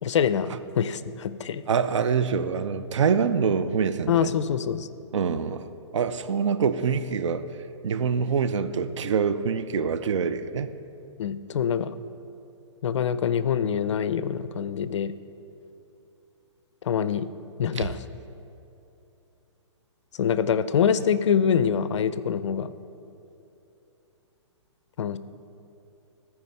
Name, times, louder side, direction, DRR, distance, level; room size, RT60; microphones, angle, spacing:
voice 1, 0.0-1.6 4.1-4.9 11.2-12.0 12.8-15.1 16.8-17.3 17.6-18.0 20.2-22.7 25.0-25.2, left 7 dB, 75° left, 15 dB, 0.5 m, -25 dB
voice 2, 1.7-4.3 5.1-5.7 5.9-7.4 7.8-10.7 17.8-17.9, right 6 dB, 80° right, 12 dB, 0.6 m, -25 dB
14.0 x 4.8 x 5.4 m, 2.8 s
hypercardioid pair, 155°, 15 cm